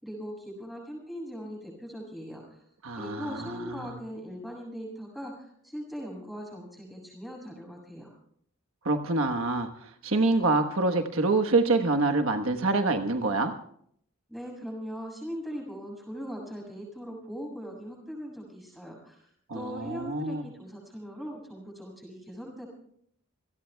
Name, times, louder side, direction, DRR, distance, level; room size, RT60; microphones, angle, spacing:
voice 1, 0.0-2.6 3.0-8.1 14.3-22.7, equal, ahead, -1 dB, 7.0 m, -40 dB
voice 2, 2.8-3.9 8.8-13.5 19.5-20.4, right 3 dB, 70° right, 5 dB, 1.3 m, -26 dB
28.0 x 18.5 x 2.3 m, 0.65 s
head